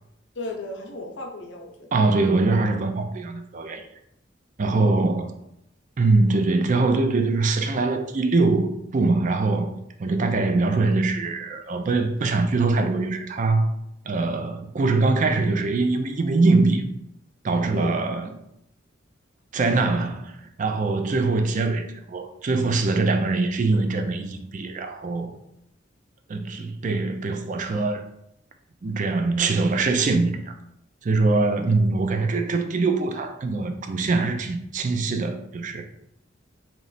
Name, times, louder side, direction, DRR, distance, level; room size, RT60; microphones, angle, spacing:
voice 1, 0.3-2.0 4.7-5.1 17.7-18.0, left 2 dB, 70° left, 0.7 m, -35 dB
voice 2, 1.9-3.8 4.6-5.4 6.0-9.7 10.0-13.7 14.1-16.8 17.4-18.3 19.5-25.3 26.3-28.0 28.8-30.5 31.0-35.9, right 3 dB, 45° right, 0.4 m, -23 dB
3.1 x 3.0 x 4.0 m
head